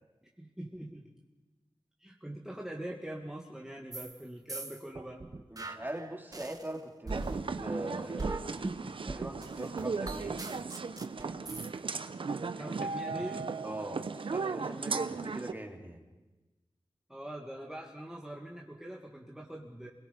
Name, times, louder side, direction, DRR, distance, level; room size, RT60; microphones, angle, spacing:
voice 1, 0.4-1.0 2.0-5.2 12.5-13.4 17.1-19.9, right 1 dB, 5° right, -2 dB, 2.0 m, -43 dB
sound 1, 3.9-4.2 4.5-6.7 7.1-11.7, right 3 dB, 40° right, 1.2 m, -40 dB
voice 2, 5.5-8.4 9.0-10.3 13.6-16.0, right 1 dB, 20° right, 2 dB, 2.8 m, -42 dB
sound 2, 7.1-15.5, right 4 dB, 70° right, 0.9 m, -36 dB
28.5 x 21.5 x 5.3 m, 1.1 s
wide cardioid pair, 95°, 9 cm